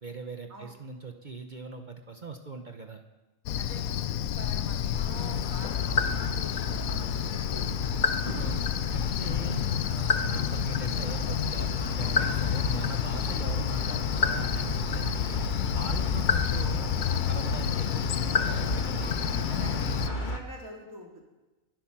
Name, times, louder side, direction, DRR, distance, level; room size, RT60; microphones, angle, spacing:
voice 1, 0.0-3.0 8.3-11.7 12.0-15.4 15.7-19.2, right 3 dB, 35° right, 5 dB, 0.9 m, -41 dB
Cricket, 3.5-20.1, left 10 dB, 70° left, 1.0 m, -30 dB
voice 2, 3.5-7.0 7.3-7.7 19.5-21.2, right 1 dB, 60° right, 0 dB, 2.9 m, -46 dB
sound 1, 4.9-20.4, left 3 dB, 35° left, 1.3 m, -32 dB
22.5 x 8.3 x 6.0 m, 1.1 s
omnidirectional pair, 1.6 m